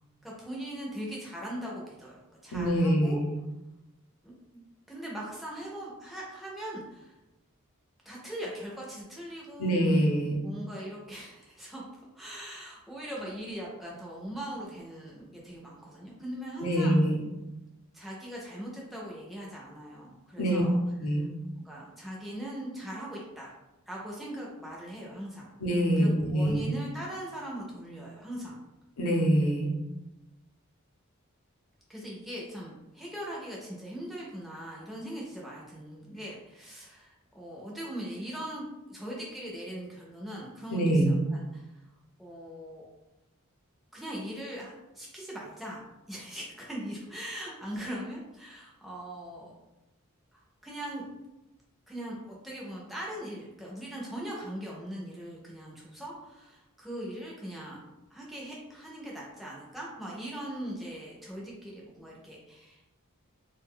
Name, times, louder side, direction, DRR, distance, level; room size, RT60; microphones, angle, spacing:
voice 1, 0.2-3.2 4.2-4.6 4.9-7.2 8.1-9.8 10.4-11.9 12.1-17.0 17.9-20.8 21.1-21.3 21.6-23.5 23.9-25.5 26.0-28.6 31.9-38.6 38.9-41.7 42.2-42.8 43.9-45.8 46.1-49.5 50.3-51.2 51.9-57.8 58.1-62.8, right 1 dB, ahead, -5 dB, 0.4 m, -40 dB
voice 2, 2.5-3.4 9.6-10.4 16.6-17.2 20.4-20.6 21.0-21.3 25.6-26.6 29.0-29.7 40.7-41.2, right 1 dB, 90° left, 0 dB, 0.7 m, -25 dB
2.3 x 2.1 x 3.6 m, 1.0 s
head